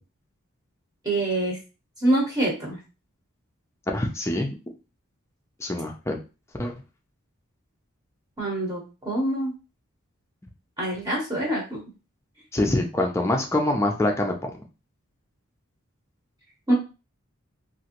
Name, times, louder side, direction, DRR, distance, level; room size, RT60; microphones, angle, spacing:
voice 1, 1.0-1.6 2.0-2.8 8.4-9.5 10.8-11.8 16.7-16.8, right 1 dB, 15° right, -3 dB, 0.8 m, -25 dB
voice 2, 3.9-4.5 5.6-6.2 6.6-6.7 12.5-14.5, left 1 dB, 10° left, 2 dB, 0.4 m, -25 dB
3.0 x 2.5 x 2.9 m, 0.31 s
head